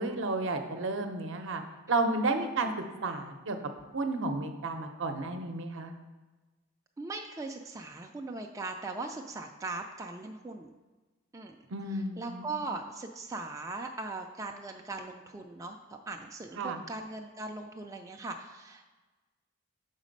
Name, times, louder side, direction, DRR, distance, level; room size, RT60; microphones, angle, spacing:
voice 1, 0.0-1.6 1.9-2.7 3.0-3.6 3.9-5.9 11.7-12.6 16.6-16.8, right 2 dB, 65° right, 6 dB, 0.6 m, -32 dB
voice 2, 7.0-10.7 11.3-11.5 11.9-18.8, right 3 dB, 15° right, 2 dB, 0.3 m, -39 dB
5.9 x 4.1 x 5.1 m, 1.2 s
head